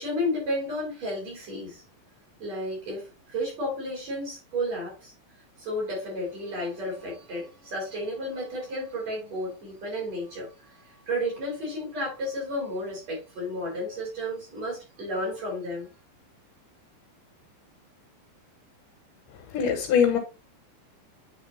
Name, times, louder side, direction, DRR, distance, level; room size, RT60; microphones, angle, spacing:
voice 1, 0.0-1.8 2.4-5.1 5.6-15.9, equal, 45° right, 5.5 m, -32 dB
voice 2, 19.5-20.2, left 7 dB, 70° left, 3.3 m, -22 dB
8.8 x 5.1 x 2.8 m
omnidirectional pair, 4.1 m